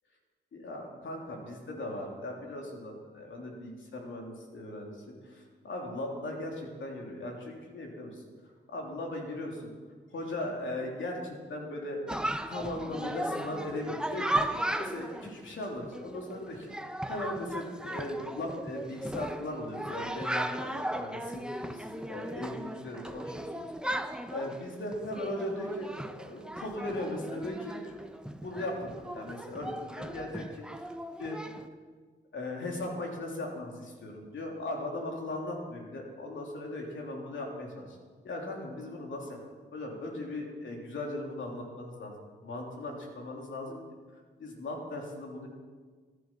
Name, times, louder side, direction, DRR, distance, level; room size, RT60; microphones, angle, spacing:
voice 1, 0.5-8.2 8.7-9.7 10.1-12.0 12.5-14.4 14.7-16.7 17.1-23.7 24.3-28.0 28.2-30.9 31.2-31.4 32.3-38.0 38.2-39.4 39.7-42.1 42.4-43.8 44.4-45.5, left 1 dB, 70° left, 0 dB, 3.3 m, -38 dB
Chatter, 12.1-31.7, right 1 dB, 5° right, 1.0 m, -37 dB
14.0 x 11.0 x 6.2 m, 1.5 s
supercardioid pair, 45°, 20 cm